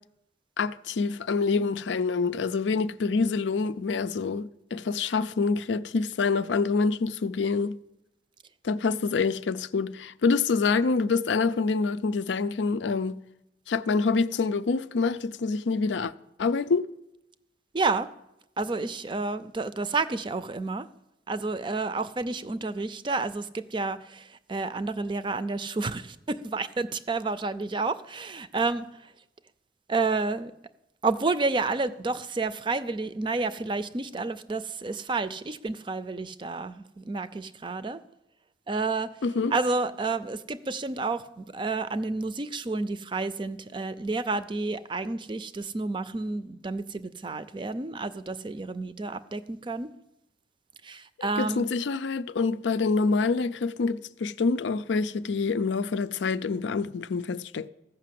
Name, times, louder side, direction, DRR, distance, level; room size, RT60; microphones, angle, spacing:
voice 1, 0.6-7.8 8.6-13.2 13.7-16.1 16.4-16.9 39.2-39.5 51.2-57.7, left 4 dB, 85° left, 0.5 m, -26 dB
voice 2, 17.7-18.1 18.6-20.9 21.3-28.9 29.9-30.5 31.0-38.0 38.7-39.1 39.5-49.9 50.8-51.6, right 3 dB, 25° right, 0.4 m, -30 dB
14.5 x 5.9 x 7.6 m
head